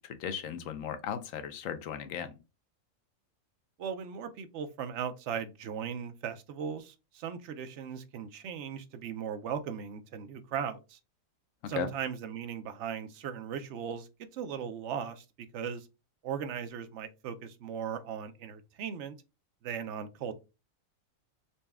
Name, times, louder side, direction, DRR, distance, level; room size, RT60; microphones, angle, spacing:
voice 1, 0.0-2.4 11.6-11.9, left 8 dB, 75° left, 1.0 m, -36 dB
voice 2, 3.8-11.0 11.7-15.2 15.5-15.9 16.2-19.1 19.6-20.3, right 7 dB, 65° right, 0.8 m, -38 dB
4.1 x 2.2 x 3.3 m
omnidirectional pair, 1.4 m